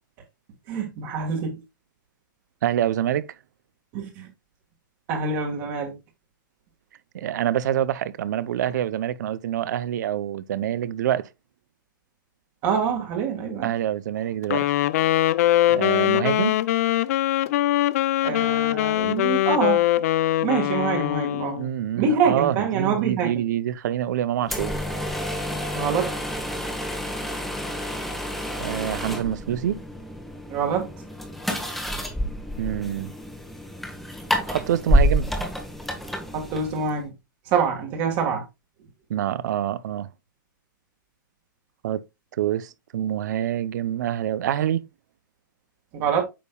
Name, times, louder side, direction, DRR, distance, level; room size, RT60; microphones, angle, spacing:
voice 1, 0.7-1.6 3.9-4.3 5.1-6.0 12.6-13.7 18.2-19.8 20.4-21.6 21.9-23.4 25.7-26.1 30.5-30.9 36.3-37.1 37.4-38.4 45.9-46.2, right 6 dB, 35° right, 1.6 m, -25 dB
voice 2, 2.6-3.3 7.1-11.3 13.6-14.7 15.7-16.6 21.6-24.7 28.6-29.8 32.6-33.1 34.5-35.3 39.1-40.1 41.8-42.0 42.4-44.8, right 11 dB, 60° right, 0.6 m, -26 dB
Wind instrument woodwind instrument, 14.4-21.7, left 14 dB, 45° left, 0.4 m, -22 dB
sound 1, 24.4-37.0, equal, ahead, 1.0 m, -28 dB
8.6 x 5.4 x 2.2 m
hypercardioid pair, 155°, 11 cm